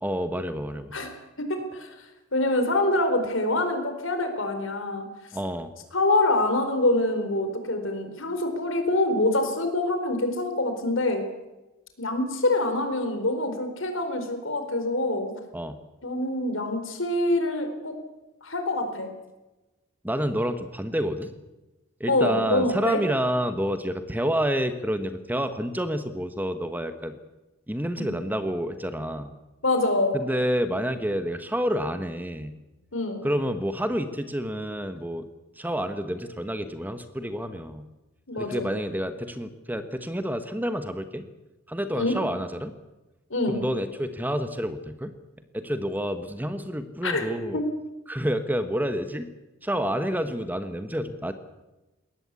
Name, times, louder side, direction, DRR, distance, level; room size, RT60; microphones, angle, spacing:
voice 1, 0.0-0.9 5.3-5.7 15.5-15.8 20.0-21.3 22.0-27.1 27.7-29.3 30.1-32.5 33.2-35.3 35.6-37.9 38.4-41.2 41.7-42.7 43.5-45.1 45.5-47.6 48.1-49.3 49.6-51.3, equal, 10° right, 9 dB, 1.2 m, -28 dB
voice 2, 1.4-1.9 2.3-5.1 5.9-11.3 12.0-15.3 16.0-17.9 18.4-19.1 22.1-23.0 28.0-28.1 29.6-30.2 32.9-33.2 38.3-38.7 41.9-42.1 43.3-43.6 47.0-47.3 47.5-47.6, left 2 dB, 65° left, 7 dB, 4.3 m, -25 dB
21.5 x 18.0 x 8.4 m, 1.0 s
head